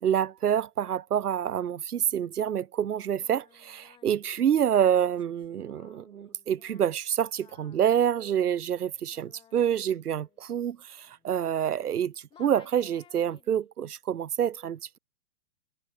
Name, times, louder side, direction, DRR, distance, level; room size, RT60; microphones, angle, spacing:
voice 1, 0.0-12.1 12.4-15.0, right 9 dB, 90° right, 1.2 m, -27 dB
Singing, 3.0-12.0 12.3-13.7, left 10 dB, 10° left, 3.5 m, -60 dB
hypercardioid pair, 165°, 44 cm